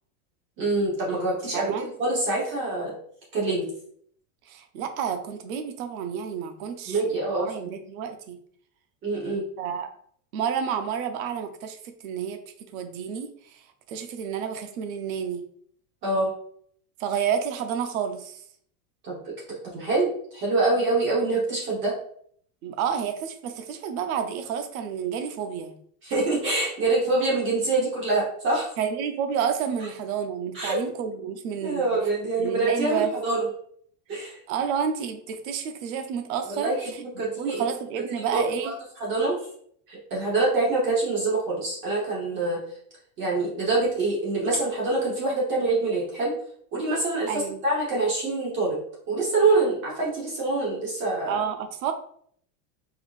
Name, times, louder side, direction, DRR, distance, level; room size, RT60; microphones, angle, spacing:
voice 1, 0.6-2.9 3.3-3.7 6.9-7.7 9.0-9.5 16.0-16.3 19.0-21.9 26.0-28.7 30.5-30.8 31.6-33.5 34.1-34.4 36.5-37.6 38.3-38.7 39.0-39.4 39.9-42.6 43.2-46.3 46.7-48.8 49.1-51.4, right 2 dB, 25° right, -4 dB, 1.0 m, -25 dB
voice 2, 1.5-1.9 4.5-8.4 9.6-9.9 10.3-12.4 12.7-13.6 13.9-15.4 17.0-18.4 22.6-25.8 28.8-32.0 32.4-33.1 34.1-38.8 47.3-47.6 51.3-51.9, right 7 dB, 60° right, 7 dB, 0.7 m, -30 dB
4.4 x 3.7 x 2.4 m, 0.62 s
supercardioid pair, 170°, 47 cm